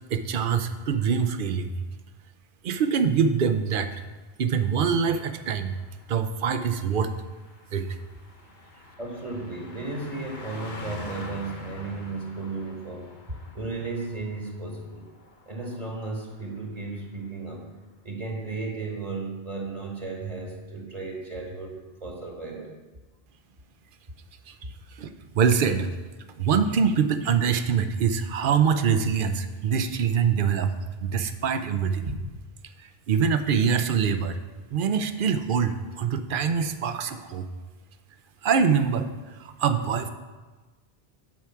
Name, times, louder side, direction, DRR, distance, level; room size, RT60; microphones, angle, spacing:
voice 1, 0.1-1.7 2.6-3.9 4.4-5.8 6.1-7.1 7.7-7.9 24.5-24.6 25.0-25.1 25.3-25.9 26.4-30.7 31.0-32.1 33.1-34.4 34.7-37.5 38.4-39.1 39.4-40.1, right 6 dB, 60° right, 10 dB, 0.7 m, -24 dB
Car passing by, 4.8-16.7 17.0-17.2, left 2 dB, 50° left, 1.1 m, -46 dB
voice 2, 9.0-15.0 15.5-17.7 18.0-22.8, right 3 dB, 40° right, 0 dB, 1.4 m, -34 dB
10.5 x 4.8 x 5.7 m, 1.3 s
omnidirectional pair, 1.0 m